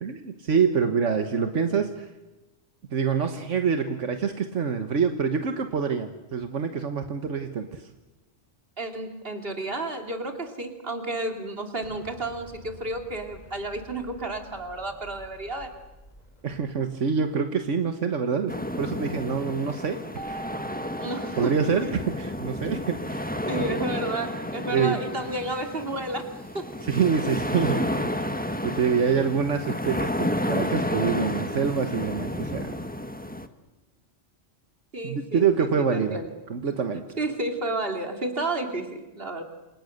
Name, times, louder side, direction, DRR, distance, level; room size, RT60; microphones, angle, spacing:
voice 1, 0.0-2.1 2.9-7.9 16.4-20.0 20.3-20.4 21.4-23.2 23.6-23.8 24.7-25.0 26.8-28.1 28.6-32.7 35.0-36.2 36.5-37.0, right 6 dB, 80° right, 7 dB, 1.7 m, -26 dB
voice 2, 8.8-15.7 21.0-21.5 21.8-21.9 23.5-26.7 34.9-36.3 37.2-39.4, right 2 dB, 50° right, 4 dB, 3.2 m, -31 dB
Explosion, 11.8-17.8, equal, 35° left, 4.5 m, -50 dB
sound 1, 18.5-33.5, left 1 dB, 10° left, 1.3 m, -31 dB
Keyboard (musical), 20.1-22.8, right 3 dB, 15° right, 1.6 m, -42 dB
28.5 x 27.5 x 6.6 m, 1.1 s
omnidirectional pair, 1.2 m